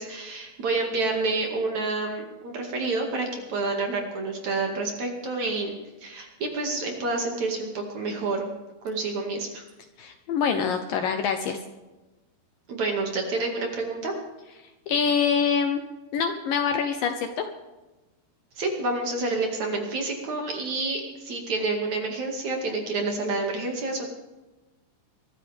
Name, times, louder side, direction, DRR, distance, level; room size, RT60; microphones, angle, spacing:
voice 1, 0.0-5.8 6.0-8.5 8.8-9.6 12.7-14.1 18.6-24.1, right 3 dB, 50° right, 1 dB, 3.1 m, -28 dB
voice 2, 10.0-11.6 14.9-15.8 16.1-17.4, left 6 dB, 70° left, 6 dB, 2.3 m, -25 dB
24.0 x 14.0 x 3.6 m, 1.1 s
omnidirectional pair, 4.8 m